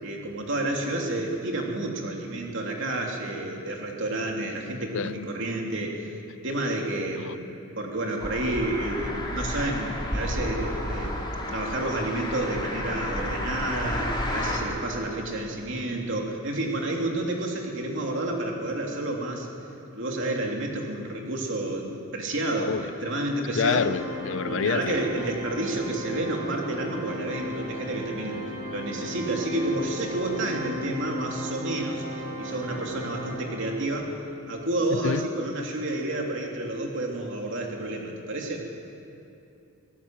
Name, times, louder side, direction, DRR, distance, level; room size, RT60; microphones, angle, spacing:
voice 1, 0.0-6.2 6.4-11.2 11.5-19.5 19.9-23.9 24.4-28.4 28.7-34.1 34.5-38.6, right 1 dB, 60° right, 3.0 m, -30 dB
sound 1, 8.2-14.6, left 1 dB, 20° left, 2.9 m, -31 dB
Organ, 23.4-34.1, equal, 35° right, 7.1 m, -36 dB
voice 2, 23.5-25.0 35.0-35.3, left 6 dB, 60° left, 0.5 m, -27 dB
25.0 x 16.5 x 7.7 m
head